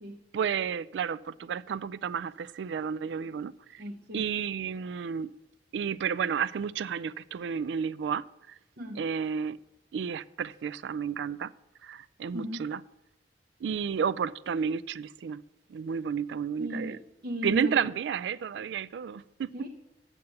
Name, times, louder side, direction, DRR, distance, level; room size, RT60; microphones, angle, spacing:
voice 1, 0.3-3.8 4.1-5.3 5.7-8.6 8.9-9.6 9.9-11.5 11.8-12.8 13.6-15.4 15.7-17.0 17.4-19.5, right 7 dB, 85° right, 0.3 m, -31 dB
voice 2, 3.8-4.3 8.8-9.0 12.3-12.7 16.6-17.8 18.5-18.6 19.5-19.7, equal, 65° right, 0.7 m, -36 dB
8.3 x 6.9 x 6.5 m
head